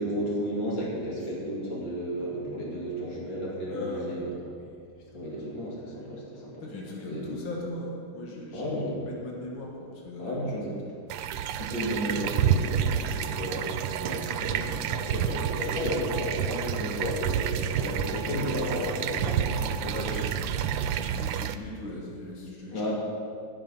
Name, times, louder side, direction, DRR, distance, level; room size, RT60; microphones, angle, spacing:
voice 1, 0.0-4.4 5.1-6.6 7.1-7.2 8.5-9.0 10.2-10.7 11.5-20.2 22.7-22.9, equal, 65° left, -5 dB, 3.0 m, -33 dB
voice 2, 3.7-5.3 6.6-10.9 11.6-11.8 19.9-20.6 20.9-22.9, left 1 dB, 85° left, -2 dB, 2.4 m, -39 dB
sound 1, 11.1-21.6, right 8 dB, 80° right, 1.3 m, -29 dB
16.0 x 6.8 x 5.6 m, 2.3 s
omnidirectional pair, 2.1 m